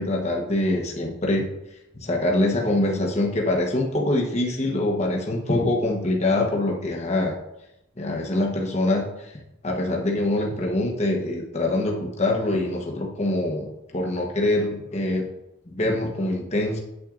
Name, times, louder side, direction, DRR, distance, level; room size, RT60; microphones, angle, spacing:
voice 1, 0.0-1.5 2.0-7.3 8.0-9.3 9.6-13.7 13.9-15.2 15.7-16.8, left 1 dB, 30° left, -1 dB, 1.1 m, -24 dB
8.7 x 7.7 x 2.5 m, 0.89 s
head